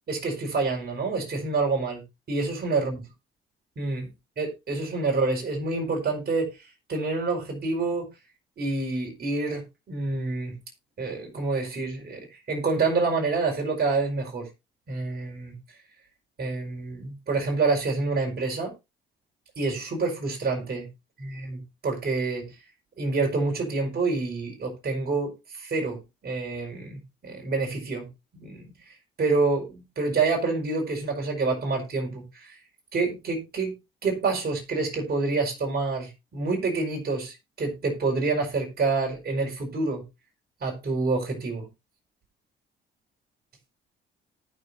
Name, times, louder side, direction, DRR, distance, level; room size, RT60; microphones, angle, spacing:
voice 1, 0.1-3.0 3.8-4.1 4.4-6.6 6.9-8.1 8.6-10.6 11.0-12.2 12.5-14.5 14.9-15.6 16.4-18.7 19.6-20.9 21.2-22.5 23.0-28.7 29.2-32.6 32.9-33.7 34.0-40.0 40.6-41.7, right 3 dB, 50° right, 5.2 m, -27 dB
18.5 x 6.6 x 2.7 m
cardioid pair, 90°, 20 cm